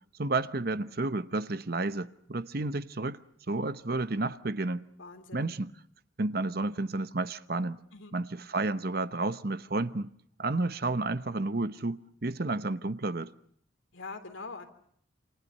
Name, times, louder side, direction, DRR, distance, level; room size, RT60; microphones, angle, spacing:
voice 1, 0.2-3.2 3.5-4.8 5.3-5.7 6.2-7.8 8.1-10.1 10.4-13.3, right 2 dB, 50° right, 0.9 m, -31 dB
voice 2, 5.0-5.5 7.9-8.1 13.9-14.6, left 4 dB, 75° left, 3.3 m, -43 dB
28.0 x 27.5 x 5.4 m
head